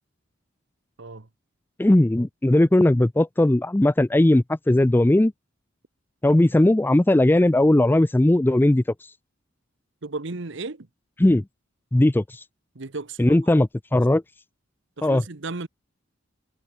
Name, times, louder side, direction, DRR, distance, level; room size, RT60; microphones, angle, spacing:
voice 1, 1.8-5.3 6.2-8.8 11.2-11.4 11.9-12.2 13.2-14.2 15.0-15.2, left 1 dB, 10° left, 0.4 m, -18 dB
voice 2, 10.0-10.9 12.7-13.4 15.0-15.7, right 3 dB, 70° right, 1.2 m, -34 dB
head